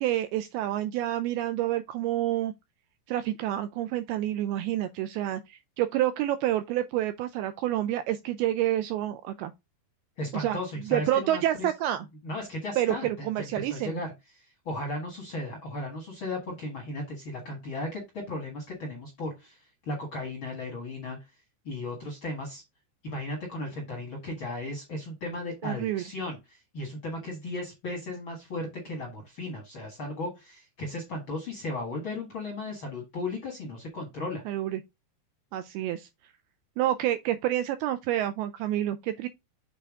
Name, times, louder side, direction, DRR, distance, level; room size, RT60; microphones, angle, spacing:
voice 1, 0.0-2.5 3.1-9.5 10.3-10.6 10.9-12.1 12.8-14.0 25.6-26.0 34.5-34.8 35.5-36.1 36.8-39.3, right 13 dB, 85° right, 2.2 m, -28 dB
voice 2, 10.2-11.7 12.2-14.1 14.6-19.6 19.8-21.2 21.6-22.6 23.0-34.4, left 2 dB, 55° left, 1.3 m, -35 dB
8.2 x 4.3 x 3.6 m
omnidirectional pair, 5.0 m